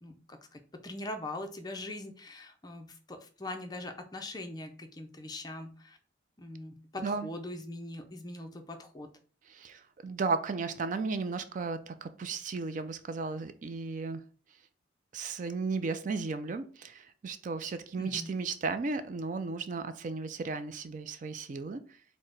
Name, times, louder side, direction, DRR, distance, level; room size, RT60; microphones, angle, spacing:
voice 1, 0.0-6.0 6.4-9.1 18.0-18.3, left 2 dB, 20° left, 6 dB, 0.5 m, -42 dB
voice 2, 7.0-7.3 9.4-14.2 15.1-22.0, right 4 dB, 45° right, 11 dB, 0.3 m, -35 dB
4.6 x 2.1 x 4.5 m, 0.40 s
head